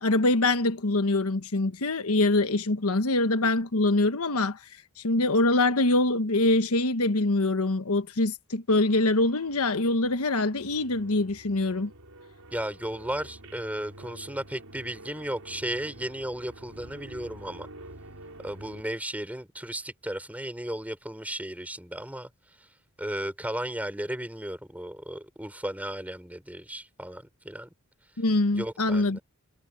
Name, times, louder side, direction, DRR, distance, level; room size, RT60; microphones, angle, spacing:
voice 1, 0.0-4.6 5.0-11.9 28.2-29.2, left 2 dB, 85° left, 1.2 m, -24 dB
sound 1, 8.7-18.8, right 1 dB, 85° right, 4.4 m, -48 dB
voice 2, 12.5-17.7 18.4-22.3 23.0-27.7 28.5-29.2, right 1 dB, 5° right, 4.7 m, -35 dB
head